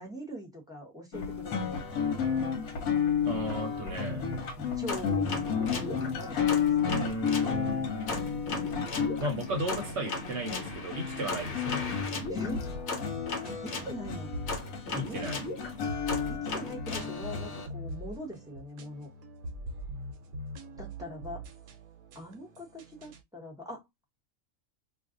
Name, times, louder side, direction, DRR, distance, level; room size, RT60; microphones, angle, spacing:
voice 1, 0.0-1.9 4.6-6.7 12.3-12.7 13.6-14.3 15.1-15.2 16.3-19.1 20.8-21.4 22.1-23.8, equal, 5° right, 0.9 m, -42 dB
sound 1, 1.1-17.6, left 7 dB, 75° left, 1.2 m, -32 dB
voice 2, 3.3-4.2 6.9-8.4 9.2-11.9 14.9-15.4, equal, 55° right, 1.0 m, -35 dB
sound 2, 4.9-7.5 8.1-13.9 14.5-17.7, left 2 dB, 55° left, 1.1 m, -37 dB
sound 3, 12.5-23.2, equal, 75° right, 1.1 m, -42 dB
2.5 x 2.5 x 3.7 m
omnidirectional pair, 1.5 m